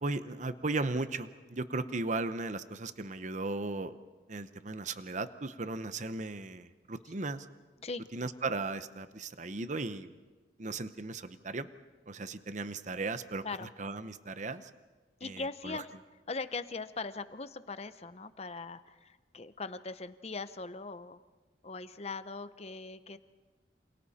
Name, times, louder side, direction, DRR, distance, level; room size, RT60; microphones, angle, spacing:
voice 1, 0.0-3.9 4.3-7.5 8.1-10.1 10.6-11.7 12.1-14.7 15.2-15.8, right 3 dB, 45° right, 12 dB, 0.9 m, -36 dB
voice 2, 15.2-15.9 16.3-21.2 21.6-23.2, left 3 dB, 35° left, 12 dB, 0.8 m, -40 dB
28.5 x 27.5 x 4.3 m, 1.3 s
head